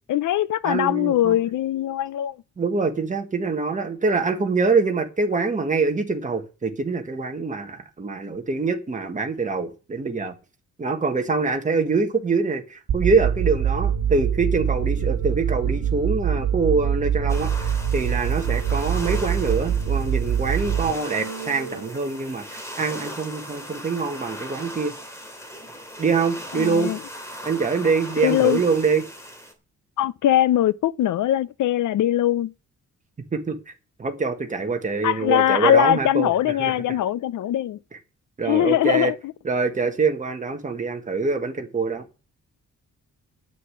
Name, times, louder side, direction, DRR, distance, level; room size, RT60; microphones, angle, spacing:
voice 1, 0.1-2.4 26.5-27.0 28.2-28.6 30.0-32.5 35.0-37.8 38.4-39.1, left 12 dB, 80° left, 0.6 m, -21 dB
voice 2, 0.6-1.4 2.6-10.4 10.8-24.9 26.0-26.9 27.4-29.0 33.3-33.6 34.0-36.7 37.9-38.0 38.4-39.1 39.4-42.1, right 4 dB, 25° right, 1.6 m, -24 dB
sound 1, 12.9-21.9, right 8 dB, 75° right, 1.6 m, -24 dB
sound 2, 17.3-29.5, equal, 10° left, 2.6 m, -38 dB
9.2 x 8.4 x 7.5 m
wide cardioid pair, 170°, 30 cm